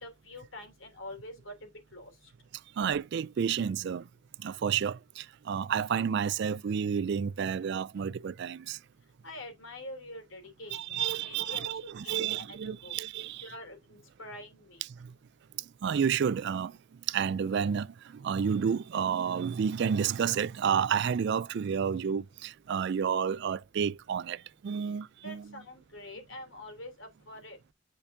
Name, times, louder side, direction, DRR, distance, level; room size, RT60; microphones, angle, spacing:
voice 1, 0.0-1.5 1.9-2.1 9.2-12.9 13.4-14.8 25.2-27.6, left 1 dB, 65° left, 3.2 m, -45 dB
voice 2, 2.8-4.0 4.4-8.8 10.7-13.5 15.0-15.1 15.8-16.8 17.1-25.5, right 7 dB, 55° right, 0.3 m, -30 dB
9.8 x 5.2 x 2.7 m
head